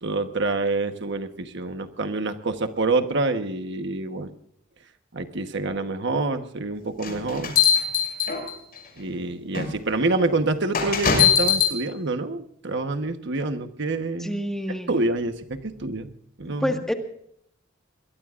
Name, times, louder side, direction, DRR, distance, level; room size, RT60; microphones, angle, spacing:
voice 1, 0.0-4.3 5.1-7.5 9.0-14.4 14.9-16.1 16.4-16.8, right 2 dB, 60° right, 7 dB, 1.2 m, -27 dB
sound 1, 7.0-8.8 9.6-9.7 10.7-11.8, left 7 dB, 50° left, 6.2 m, -21 dB
voice 2, 14.2-15.0 16.4-16.9, equal, ahead, 4 dB, 1.7 m, -28 dB
22.5 x 22.0 x 2.5 m, 0.69 s
head